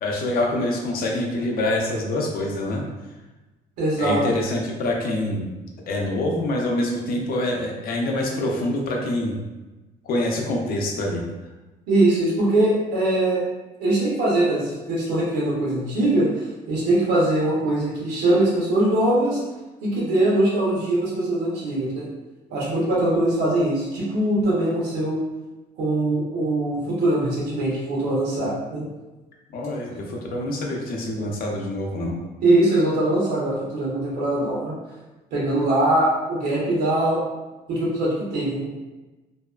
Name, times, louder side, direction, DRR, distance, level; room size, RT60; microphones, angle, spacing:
voice 1, 0.0-2.8 4.0-5.5 5.9-9.3 10.0-11.2 29.5-32.2, left 1 dB, 60° left, 0 dB, 0.6 m, -25 dB
voice 2, 3.8-4.2 11.9-13.4 13.8-19.4 19.8-22.0 22.5-25.2 25.8-28.9 32.4-34.7 35.3-37.2 37.7-38.8, right 1 dB, 85° right, -6 dB, 1.0 m, -22 dB
2.6 x 2.3 x 2.3 m, 1.1 s
cardioid pair, 110°, 17 cm